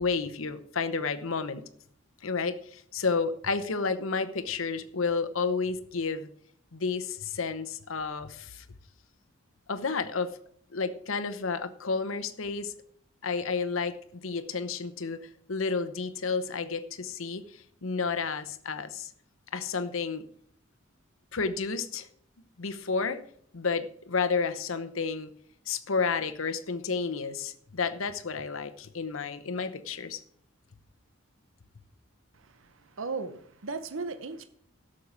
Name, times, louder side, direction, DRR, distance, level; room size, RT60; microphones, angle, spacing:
voice 1, 0.0-1.6 2.2-6.3 6.7-8.7 9.7-10.3 10.7-12.7 13.2-15.2 15.5-19.1 19.5-20.2 21.3-22.1 22.6-23.2 23.5-25.3 25.7-30.2, left 4 dB, 70° left, 0.9 m, -31 dB
voice 2, 32.3-34.5, right 4 dB, 70° right, 0.9 m, -37 dB
12.0 x 6.5 x 7.1 m
head